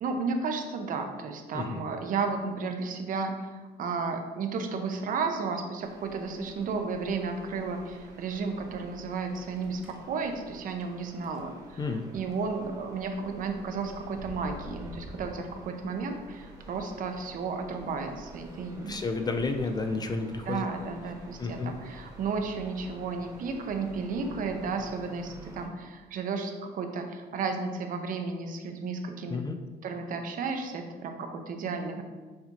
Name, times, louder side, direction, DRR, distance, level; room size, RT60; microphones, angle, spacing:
voice 1, 0.0-19.0 20.5-29.4 29.8-32.0, right 4 dB, 55° right, 5 dB, 0.6 m, -33 dB
sound 1, 5.8-25.7, right 1 dB, 20° right, 1.1 m, -50 dB
sound 2, 9.3-10.0 10.7-10.8 11.1-11.4 12.0-12.3 13.2-15.3, equal, 5° right, 0.7 m, -45 dB
voice 2, 18.9-20.7 21.4-21.7 29.3-29.6, left 3 dB, 25° left, 6 dB, 0.3 m, -31 dB
6.6 x 2.8 x 2.8 m, 1.3 s
cardioid pair, 110°, 17 cm